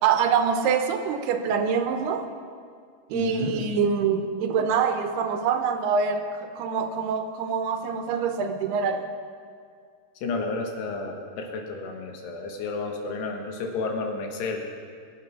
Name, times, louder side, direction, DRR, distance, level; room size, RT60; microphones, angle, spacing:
voice 1, 0.0-2.3 3.1-9.0, right 6 dB, 80° right, 6 dB, 2.8 m, -25 dB
voice 2, 3.1-3.7 10.2-14.6, left 3 dB, 80° left, 3 dB, 3.5 m, -31 dB
21.5 x 8.0 x 6.1 m, 2.2 s
omnidirectional pair, 4.8 m